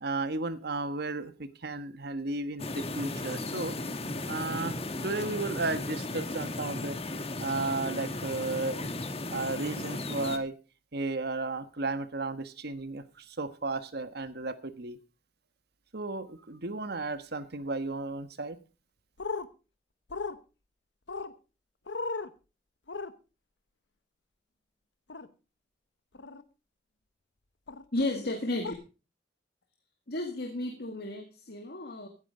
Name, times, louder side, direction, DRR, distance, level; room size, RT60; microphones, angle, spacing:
voice 1, 0.0-3.8 4.3-4.8 5.0-7.0 7.4-8.9 9.3-10.5 10.9-15.0 15.9-18.6, right 3 dB, 60° right, 12 dB, 1.3 m, -34 dB
sound 1, 2.6-10.4, left 2 dB, 35° left, 1.3 m, -36 dB
sound 2, 19.2-19.5 20.1-20.4 21.1-21.3 21.9-22.3 22.9-23.1 25.1-25.3 26.1-26.4 27.7-27.8 28.6-28.7, left 4 dB, 75° left, 1.1 m, -35 dB
voice 2, 27.9-28.7 30.1-32.1, left 2 dB, 60° left, 4 dB, 2.1 m, -33 dB
16.5 x 9.9 x 4.9 m, 0.34 s
head